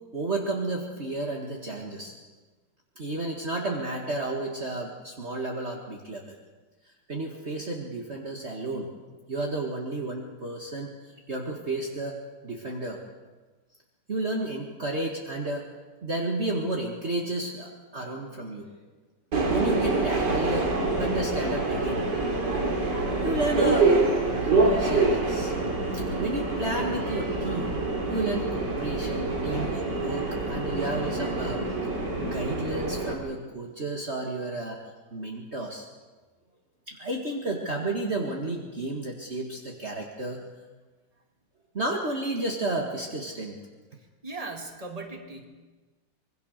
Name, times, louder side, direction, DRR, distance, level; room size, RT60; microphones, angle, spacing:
voice 1, 0.1-2.1 3.0-6.4 7.1-8.9 9.3-12.2 12.4-13.0 14.1-15.7 16.0-18.7 19.5-20.7 21.0-22.0 23.2-23.9 24.4-25.5 25.9-27.8 28.1-31.6 32.2-34.8 35.1-35.9 36.9-40.4 41.7-43.6, right 2 dB, 40° right, 0 dB, 2.2 m, -32 dB
Subway metro underground, 19.3-33.1, right 3 dB, 85° right, 3.8 m, -26 dB
voice 2, 44.2-45.4, right 3 dB, 20° right, 3 dB, 2.7 m, -38 dB
26.0 x 21.5 x 6.7 m, 1.3 s
omnidirectional pair, 1.8 m